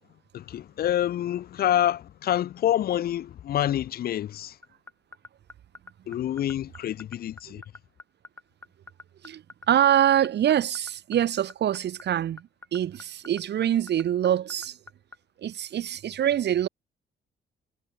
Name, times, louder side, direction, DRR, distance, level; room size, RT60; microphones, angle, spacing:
voice 1, 0.3-4.6 6.1-7.6, left 11 dB, 50° left, 0.4 m, -27 dB
sound 1, 4.6-15.2, left 2 dB, 10° left, 0.9 m, -44 dB
voice 2, 9.2-14.8 15.4-16.7, right 10 dB, 60° right, 0.9 m, -25 dB
cardioid pair, 90°, 20 cm